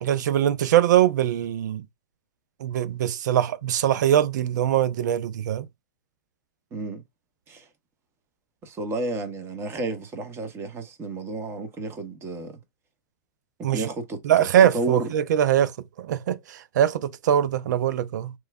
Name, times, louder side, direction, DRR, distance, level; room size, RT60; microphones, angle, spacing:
voice 1, 0.0-1.8 2.6-5.7 13.6-13.8 14.2-15.7 16.0-18.3, right 11 dB, 70° right, 0.5 m, -22 dB
voice 2, 6.7-7.0 7.5-7.7 8.6-12.6 13.6-14.2 14.6-15.1, right 3 dB, 25° right, 1.0 m, -31 dB
3.1 x 2.2 x 3.3 m
hypercardioid pair, 120°, 10 cm